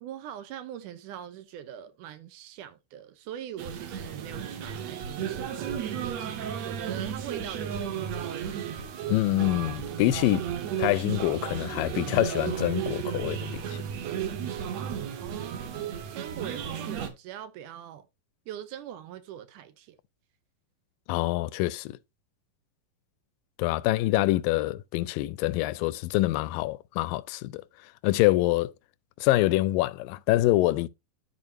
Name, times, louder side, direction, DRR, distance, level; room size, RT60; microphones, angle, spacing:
voice 1, 0.0-8.6 15.2-18.1 18.5-20.0 23.9-24.0, right 10 dB, 75° right, 2.0 m, -42 dB
sound 1, 3.6-17.1, right 8 dB, 60° right, 2.1 m, -34 dB
voice 2, 9.1-10.5 10.8-13.8 21.1-22.0 23.6-27.6 28.0-28.7 29.2-30.9, left 17 dB, 80° left, 2.1 m, -25 dB
12.5 x 4.7 x 2.6 m
omnidirectional pair, 4.1 m